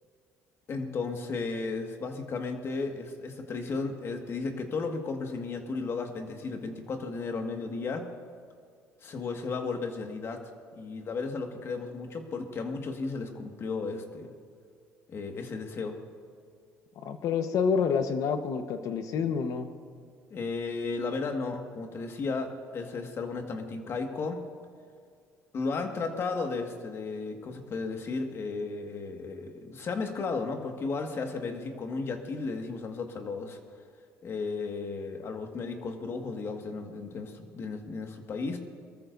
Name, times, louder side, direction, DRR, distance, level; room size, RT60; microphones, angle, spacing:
voice 1, 0.7-8.1 9.0-10.4 10.7-14.3 15.1-16.0 20.3-24.4 25.5-33.6 34.2-38.6, left 4 dB, 45° left, 4 dB, 1.8 m, -34 dB
voice 2, 17.0-19.7, left 6 dB, 65° left, 8 dB, 1.2 m, -28 dB
22.5 x 13.5 x 2.7 m, 2.2 s
cardioid pair, 105°, 6 cm